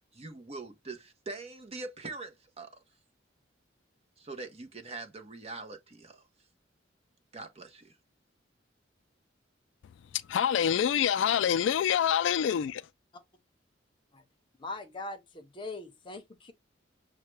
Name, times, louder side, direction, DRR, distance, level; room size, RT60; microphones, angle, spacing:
voice 1, 0.1-2.8 4.2-6.3 7.3-8.0, right 3 dB, 30° right, 0.8 m, -43 dB
voice 2, 9.8-12.9, left 9 dB, 70° left, 0.3 m, -27 dB
voice 3, 14.6-16.5, left 2 dB, 25° left, 0.8 m, -41 dB
6.4 x 2.2 x 3.2 m
head